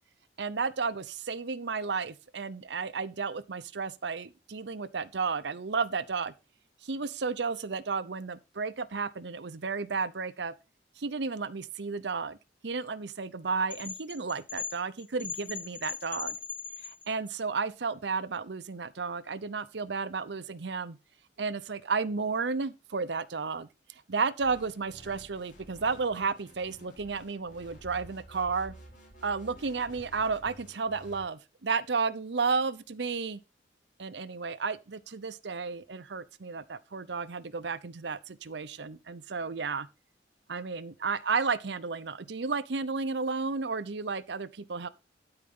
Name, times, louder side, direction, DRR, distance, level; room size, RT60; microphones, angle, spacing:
voice 1, 0.4-6.3 6.8-10.5 11.0-12.4 12.6-16.4 16.8-21.0 21.4-23.7 24.1-28.7 29.2-33.4 34.0-39.9 40.5-44.9, right 4 dB, 70° right, 0.7 m, -32 dB
sound 1, 13.7-17.3, left 6 dB, 80° left, 3.8 m, -39 dB
sound 2, 24.4-31.3, right 1 dB, 45° left, 3.7 m, -51 dB
12.0 x 4.8 x 5.4 m
head